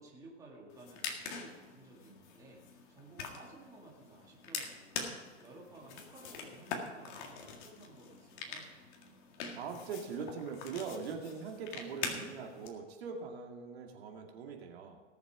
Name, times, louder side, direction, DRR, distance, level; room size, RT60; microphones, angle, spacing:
voice 1, 0.0-2.6 2.9-5.1 5.4-8.7, right 2 dB, 10° right, -3 dB, 2.1 m, -55 dB
sound 1, 0.7-12.7, left 5 dB, 40° left, 2.0 m, -44 dB
voice 2, 9.5-15.0, right 5 dB, 55° right, 2 dB, 2.2 m, -42 dB
19.0 x 7.2 x 5.0 m, 1.4 s
hypercardioid pair, 150°, 36 cm